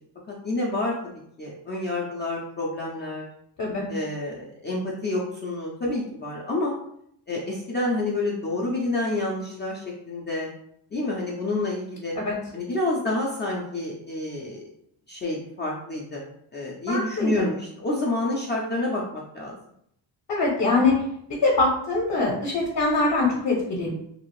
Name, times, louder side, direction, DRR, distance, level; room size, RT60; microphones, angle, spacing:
voice 1, 0.3-3.2 3.9-6.7 7.3-10.5 10.9-12.2 12.5-14.6 15.1-16.2 16.5-19.6, left 2 dB, 25° left, -5 dB, 0.3 m, -28 dB
voice 2, 16.9-17.3 20.3-21.0 21.4-23.9, left 3 dB, 50° left, -2 dB, 0.7 m, -23 dB
2.7 x 2.4 x 3.0 m, 0.71 s
wide cardioid pair, 155°, 45 cm